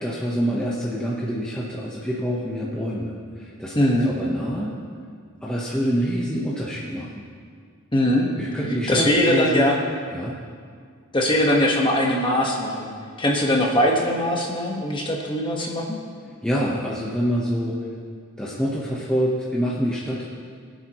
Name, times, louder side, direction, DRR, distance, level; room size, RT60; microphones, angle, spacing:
voice 1, 0.0-4.7 5.4-7.3 8.4-9.7 10.1-10.4 16.2-17.9 18.4-20.3, equal, 5° left, -6 dB, 1.0 m, -26 dB
voice 2, 3.7-4.1 7.9-8.3 8.9-9.8 11.1-12.9 13.2-16.0, left 1 dB, 20° left, -1 dB, 1.4 m, -21 dB
22.5 x 8.2 x 3.1 m, 2.1 s
head